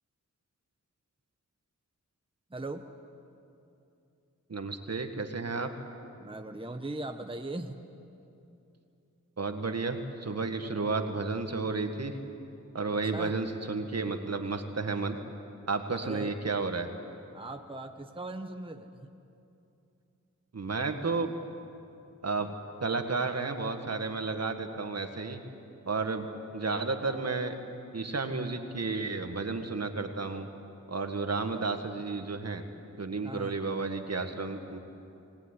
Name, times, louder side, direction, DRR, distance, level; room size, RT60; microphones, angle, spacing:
voice 1, 2.5-2.8 6.2-7.8 12.9-13.3 15.9-16.3 17.3-19.1 31.5-31.7 33.2-33.5, right 2 dB, 15° right, 5 dB, 1.2 m, -39 dB
voice 2, 4.5-5.7 9.4-12.1 12.7-15.2 15.7-16.9 20.5-21.3 22.2-22.5 22.8-25.4 25.9-27.6 27.9-30.5 30.9-32.6 33.0-34.8, right 3 dB, 55° right, 6 dB, 1.9 m, -32 dB
21.5 x 19.0 x 10.0 m, 2.8 s
wide cardioid pair, 65°, 31 cm